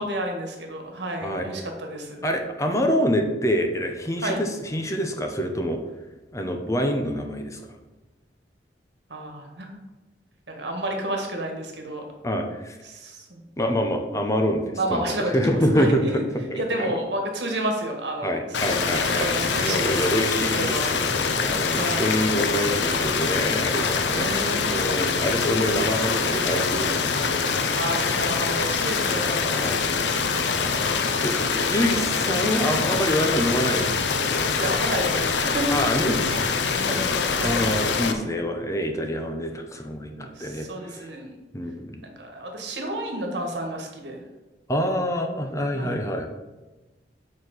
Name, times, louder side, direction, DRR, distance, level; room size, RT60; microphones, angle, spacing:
voice 1, 0.0-2.2 4.2-4.4 9.1-9.7 10.5-12.0 12.8-13.4 14.7-16.2 16.5-20.1 20.5-21.1 21.3-22.1 24.1-24.7 27.7-29.4 34.5-35.8 36.7-37.7 40.3-41.3 42.0-44.2 45.7-46.0, right 1 dB, 75° right, 2 dB, 1.6 m, -31 dB
voice 2, 2.2-5.8 6.3-7.6 12.2-12.8 13.6-16.2 16.5-17.0 18.2-19.3 19.7-24.3 24.6-27.1 29.4-30.0 30.8-30.9 31.2-33.9 34.2-34.7 35.7-36.5 37.4-41.1 41.5-42.0 44.7-46.3, equal, 15° left, 4 dB, 0.7 m, -26 dB
sound 1, 18.5-38.1, left 5 dB, 80° left, 0.7 m, -24 dB
6.9 x 4.3 x 6.4 m, 1.1 s
head